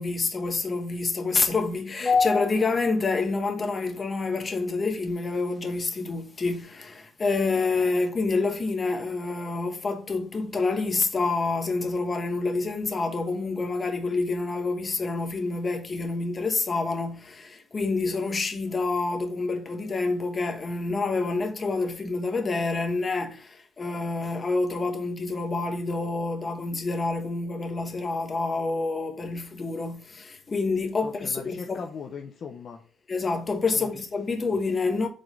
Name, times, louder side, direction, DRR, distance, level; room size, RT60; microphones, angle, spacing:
voice 1, 0.0-31.8 33.1-35.1, left 3 dB, 35° left, 1.2 m, -27 dB
voice 2, 31.0-32.8 33.7-34.0 34.5-34.6, left 6 dB, 55° left, 0.7 m, -39 dB
5.1 x 3.7 x 5.3 m
cardioid pair, 90°, 0 cm